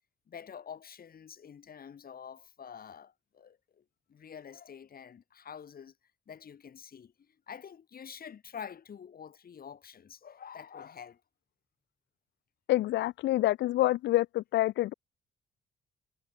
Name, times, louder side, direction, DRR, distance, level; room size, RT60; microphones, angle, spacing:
voice 1, 0.3-3.8 4.1-5.9 6.3-11.2, left 7 dB, 50° left, 3.1 m, -47 dB
voice 2, 12.7-14.9, left 15 dB, 75° left, 0.4 m, -27 dB
cardioid pair, 85°, 19 cm